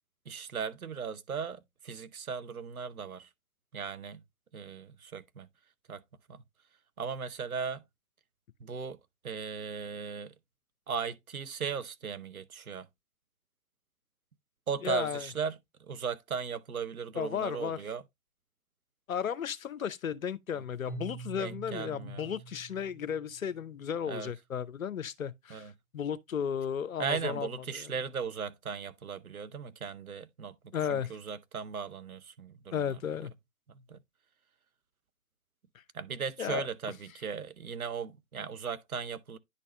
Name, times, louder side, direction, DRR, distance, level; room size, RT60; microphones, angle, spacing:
voice 1, 0.3-3.3 3.7-4.2 4.5-5.5 5.9-6.0 6.3-6.4 7.0-7.9 8.6-9.0 9.2-10.3 10.9-12.9 14.7-18.0 20.5-20.6 21.4-22.3 24.1-24.3 25.5-25.7 27.0-33.3 33.7-34.0 35.9-39.4, right 6 dB, 80° right, 0.8 m, -37 dB
voice 2, 14.8-15.3 17.1-17.8 19.1-27.9 30.7-31.1 32.7-33.3 36.4-36.7, left 8 dB, 70° left, 0.7 m, -34 dB
Keyboard (musical), 20.9-23.8, right 6 dB, ahead, 2.1 m, -46 dB
9.8 x 4.1 x 3.1 m
figure-of-eight pair, 130°, 43 cm